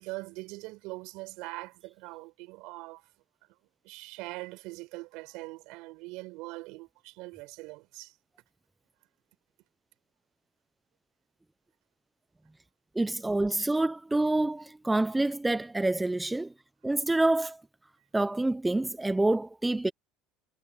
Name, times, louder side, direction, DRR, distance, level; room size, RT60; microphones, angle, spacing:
voice 1, 0.0-3.1 3.8-8.1, right 23 dB, 70° right, 6.7 m, -42 dB
voice 2, 12.9-16.5 16.8-17.6 18.1-19.9, right 2 dB, 10° right, 0.8 m, -27 dB
supercardioid pair, 110°, 0 cm